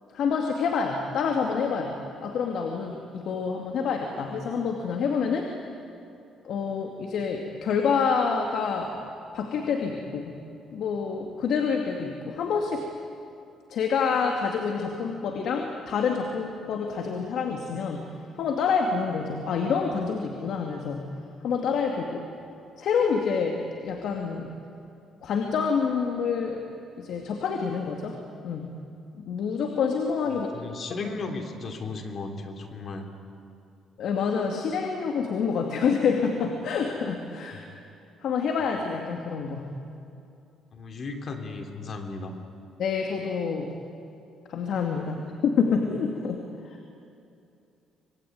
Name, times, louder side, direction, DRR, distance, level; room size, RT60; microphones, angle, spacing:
voice 1, 0.1-5.5 6.4-8.9 9.3-10.3 10.7-12.9 13.7-18.1 18.4-21.1 21.4-22.2 22.8-24.5 25.2-26.6 27.0-28.2 28.4-28.7 29.2-30.7 31.0-31.1 34.0-37.6 38.2-39.7 42.8-43.8 44.5-46.8, left 5 dB, 65° left, 3 dB, 2.4 m, -27 dB
voice 2, 30.3-33.1 37.5-37.6 40.7-42.4, left 3 dB, 45° left, 5 dB, 3.1 m, -36 dB
26.0 x 22.0 x 9.5 m, 2.6 s
cardioid pair, 120°, 0 cm